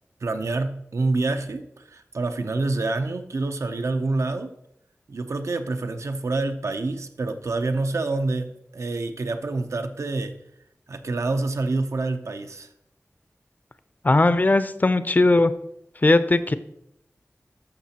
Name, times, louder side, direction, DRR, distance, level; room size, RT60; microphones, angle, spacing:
voice 1, 0.2-4.5 5.1-10.4 10.9-12.7, right 3 dB, 80° right, 8 dB, 0.6 m, -27 dB
voice 2, 14.0-15.5 16.0-16.5, left 2 dB, 35° left, 12 dB, 0.5 m, -18 dB
13.5 x 5.9 x 2.9 m, 0.79 s
wide cardioid pair, 80°, 5 cm